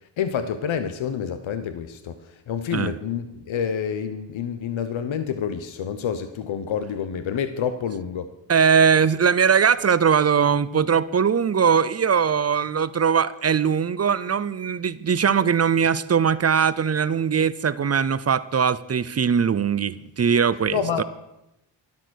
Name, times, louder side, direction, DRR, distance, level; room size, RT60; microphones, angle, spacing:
voice 1, 0.2-8.3 20.7-21.0, left 7 dB, 80° left, 10 dB, 1.0 m, -28 dB
voice 2, 8.5-21.0, right 6 dB, 35° right, 17 dB, 0.5 m, -20 dB
12.5 x 12.0 x 6.4 m, 0.90 s
wide cardioid pair, 135°, 47 cm